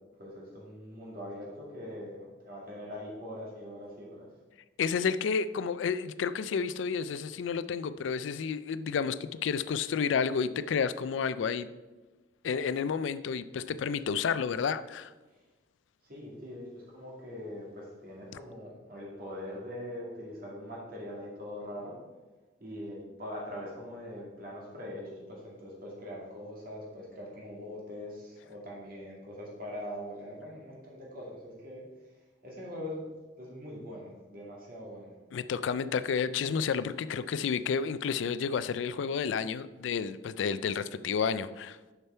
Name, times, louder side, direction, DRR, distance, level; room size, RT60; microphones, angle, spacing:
voice 1, 0.2-4.3 16.0-22.0 22.6-31.9 32.4-33.0 33.4-35.1, left 1 dB, 50° right, -3 dB, 2.2 m, -42 dB
voice 2, 4.8-11.7 12.4-15.1 35.3-41.8, left 6 dB, 90° left, 14 dB, 0.4 m, -31 dB
6.6 x 6.0 x 4.4 m, 1.2 s
head